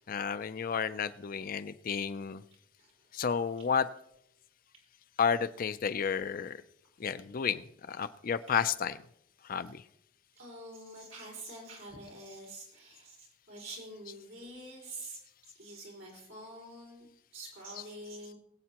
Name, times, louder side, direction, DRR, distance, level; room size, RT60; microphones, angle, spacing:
voice 1, 0.1-2.4 3.1-3.9 5.2-6.6 7.0-9.0 9.5-9.8 17.8-17.9, left 7 dB, 45° left, 13 dB, 0.4 m, -31 dB
voice 2, 2.8-3.1 10.4-17.1 17.3-18.3, right 1 dB, 65° right, -2 dB, 4.7 m, -47 dB
22.0 x 8.4 x 2.9 m, 0.78 s
head